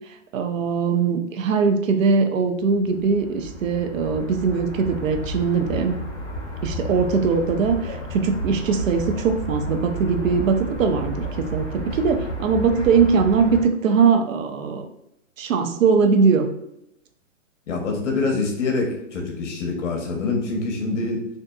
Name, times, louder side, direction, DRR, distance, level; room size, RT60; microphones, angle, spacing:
voice 1, 0.3-6.0 6.6-14.9 15.4-16.5, right 5 dB, 85° right, 6 dB, 0.6 m, -21 dB
sound 1, 2.7-13.6, right 1 dB, 10° left, 0.9 m, -32 dB
voice 2, 17.7-21.3, left 3 dB, 65° left, 1 dB, 0.9 m, -25 dB
2.6 x 2.5 x 2.3 m, 0.81 s
hypercardioid pair, 155°, 38 cm